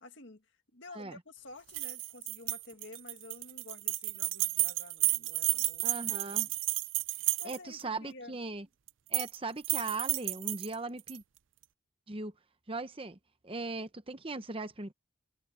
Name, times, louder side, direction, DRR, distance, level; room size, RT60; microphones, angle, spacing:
voice 1, 0.0-0.5 0.7-6.0 6.4-6.6 7.4-8.4, left 2 dB, 55° left, 1.9 m, -51 dB
sound 1, 1.7-7.8 8.9-9.4 9.6-11.2, right 19 dB, 60° right, 0.4 m, -32 dB
voice 2, 5.8-6.5 7.4-8.7 9.1-11.2 12.1-12.3 12.7-13.2 13.4-14.9, right 3 dB, 25° right, 0.9 m, -38 dB
head